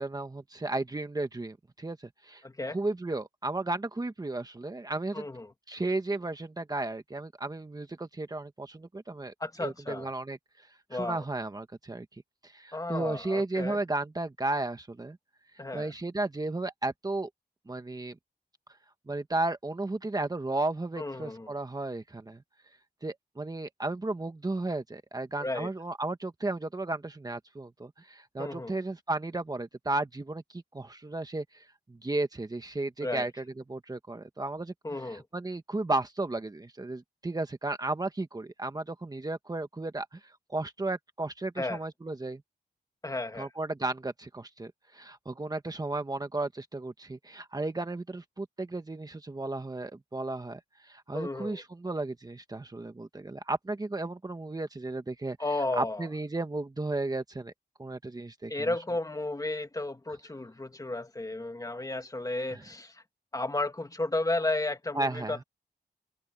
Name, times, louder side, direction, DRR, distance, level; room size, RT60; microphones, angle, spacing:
voice 1, 0.0-2.0 2.2-5.3 5.7-9.3 9.6-15.2 15.7-17.3 17.7-18.2 19.1-22.4 23.0-42.4 43.4-55.4 55.8-57.5 57.8-58.7 62.5-62.6 64.9-65.4, right 2 dB, 25° right, 1.4 m, -34 dB
voice 2, 2.4-2.8 5.1-5.5 9.4-10.1 10.9-11.2 12.7-13.8 15.6-15.9 21.0-21.5 25.4-25.7 28.4-28.7 33.0-33.3 34.8-35.2 41.6-41.8 43.0-43.5 51.1-51.6 55.4-56.1 58.5-63.0 63.3-65.4, left 2 dB, 20° left, 2.0 m, -33 dB
wide cardioid pair, 110°, 17 cm